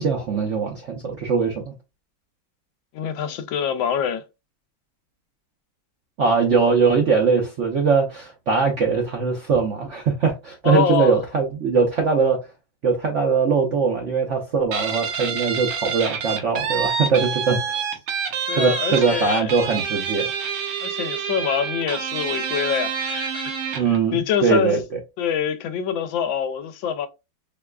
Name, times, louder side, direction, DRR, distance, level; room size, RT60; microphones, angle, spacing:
voice 1, 0.0-1.7 6.2-12.4 12.8-17.9 18.5-20.3 23.8-24.8, right 5 dB, 65° right, 0.7 m, -21 dB
voice 2, 2.9-4.2 10.6-11.2 18.5-19.6 20.8-23.8 24.1-24.8 25.2-27.1, left 8 dB, 85° left, 1.3 m, -25 dB
Guitar, 14.7-24.0, right 6 dB, 85° right, 1.6 m, -27 dB
4.6 x 2.3 x 2.2 m
omnidirectional pair, 2.1 m